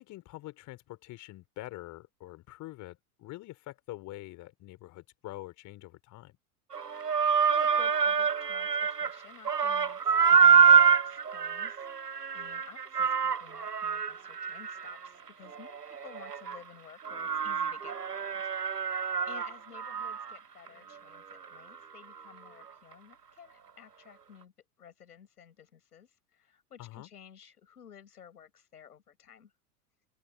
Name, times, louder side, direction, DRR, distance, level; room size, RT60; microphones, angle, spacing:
voice 1, 0.0-6.4 26.8-27.1, left 17 dB, 40° left, 3.8 m, -45 dB
sound 1, 6.7-9.2 9.5-16.6 17.0-20.4 20.7-20.8 21.3-21.4, right 7 dB, 90° right, 0.9 m, -26 dB
voice 2, 7.5-12.1 12.3-18.5 19.2-24.5 24.8-29.5, left 8 dB, 75° left, 7.8 m, -53 dB
open air
figure-of-eight pair, 85°, 46 cm